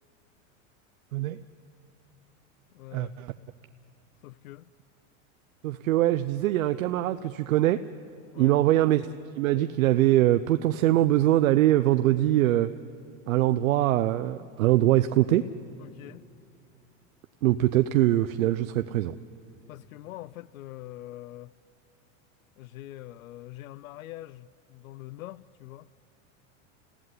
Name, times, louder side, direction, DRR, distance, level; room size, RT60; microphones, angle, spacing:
voice 1, 1.1-1.4 2.9-3.3 5.6-7.9 8.3-12.8 13.3-15.5 17.4-19.2, right 14 dB, 80° right, 0.8 m, -23 dB
voice 2, 2.7-3.1 4.2-4.7 8.3-8.5 15.8-16.3 19.7-21.5 22.6-25.9, left 15 dB, 85° left, 0.6 m, -44 dB
30.0 x 16.0 x 9.7 m
supercardioid pair, 120°, 40 cm